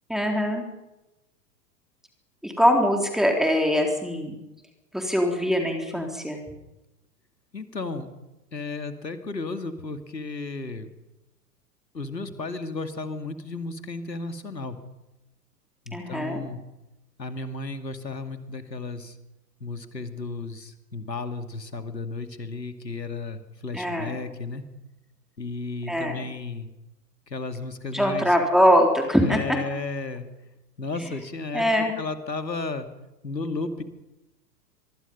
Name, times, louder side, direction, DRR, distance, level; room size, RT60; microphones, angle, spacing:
voice 1, 0.1-0.6 2.4-4.4 4.9-6.4 15.9-16.4 23.7-24.1 25.9-26.2 27.9-29.4 31.5-31.9, equal, ahead, 2 dB, 3.8 m, -22 dB
voice 2, 7.5-8.1 8.5-10.9 11.9-14.8 15.9-16.6 17.2-19.2 19.6-24.6 25.4-26.7 27.3-28.3 29.2-30.3 30.8-32.9 33.2-33.8, left 3 dB, 90° left, 8 dB, 2.4 m, -33 dB
24.5 x 24.0 x 5.5 m, 0.96 s
figure-of-eight pair, 100°, 49 cm